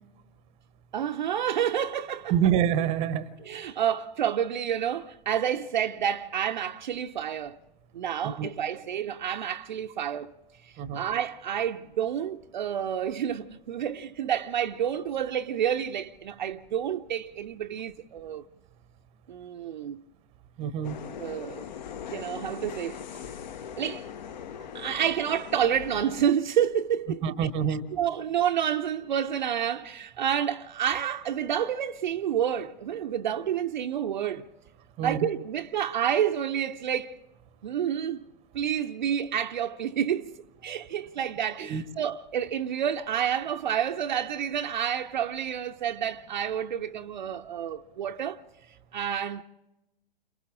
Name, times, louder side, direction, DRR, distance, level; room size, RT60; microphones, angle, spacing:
voice 1, 0.9-2.4 3.5-7.6 7.9-10.3 10.6-18.4 19.3-20.0 21.2-21.7 22.1-23.0 23.8-24.1 24.7-27.4 27.7-34.4 35.0-37.2 37.6-38.2 38.5-40.3 40.6-48.4 48.9-49.4, right 9 dB, 50° right, 0.6 m, -29 dB
voice 2, 2.3-3.3 8.2-8.5 10.8-11.0 20.6-21.0 27.2-27.9 35.0-35.2 41.6-41.8, right 9 dB, 20° right, 0.8 m, -26 dB
sound 1, 20.8-26.3, left 8 dB, 45° left, 0.8 m, -40 dB
30.0 x 27.0 x 3.7 m
figure-of-eight pair, 115°, 30 cm